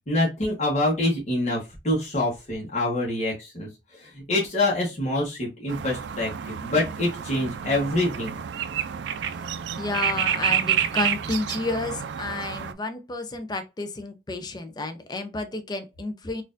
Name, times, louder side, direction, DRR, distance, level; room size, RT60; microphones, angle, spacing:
voice 1, 0.1-3.7 4.0-8.4, left 1 dB, 40° left, 1.0 m, -26 dB
sound 1, 5.7-12.7, right 9 dB, 75° right, 0.3 m, -29 dB
voice 2, 9.8-16.4, left 2 dB, 25° left, 0.4 m, -31 dB
4.1 x 2.5 x 2.5 m
head